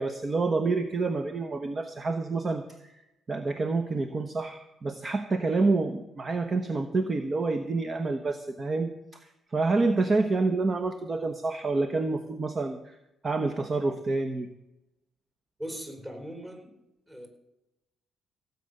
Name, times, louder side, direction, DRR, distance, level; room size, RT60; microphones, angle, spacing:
voice 1, 0.0-3.0 3.3-9.2 9.5-13.0 13.2-14.5, right 3 dB, 35° right, 8 dB, 1.1 m, -28 dB
voice 2, 15.6-16.7 17.1-17.3, equal, 15° right, 4 dB, 4.4 m, -39 dB
17.0 x 8.5 x 6.7 m, 0.92 s
cardioid pair, 90°, 0 cm